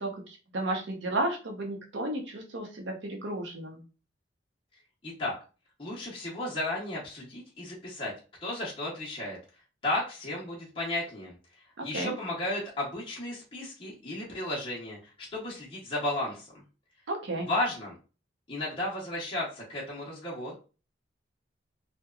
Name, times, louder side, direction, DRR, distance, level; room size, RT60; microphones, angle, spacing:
voice 1, 0.0-3.8 11.8-12.2 17.1-17.5, right 1 dB, 65° right, 2 dB, 0.7 m, -33 dB
voice 2, 5.0-5.3 5.8-8.1 8.4-9.4 9.8-11.3 11.8-16.5 17.5-17.9 18.5-20.5, left 1 dB, 25° left, -6 dB, 0.7 m, -34 dB
2.9 x 2.1 x 2.3 m, 0.34 s
head